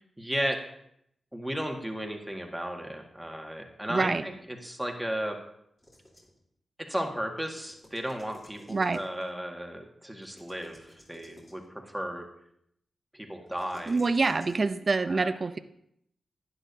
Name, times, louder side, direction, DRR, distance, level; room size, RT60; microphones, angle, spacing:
voice 1, 0.2-0.6 1.3-5.4 6.8-12.3 13.1-14.0 15.1-15.3, equal, 5° right, 2 dB, 1.8 m, -34 dB
voice 2, 3.9-4.3 8.7-9.0 13.9-15.6, right 3 dB, 50° right, 11 dB, 0.5 m, -26 dB
sound 1, 5.8-6.4 7.4-9.3 10.2-11.7 13.5-14.6, left 1 dB, 25° left, 3.4 m, -55 dB
11.5 x 9.9 x 2.7 m, 0.74 s
cardioid pair, 55°, 0 cm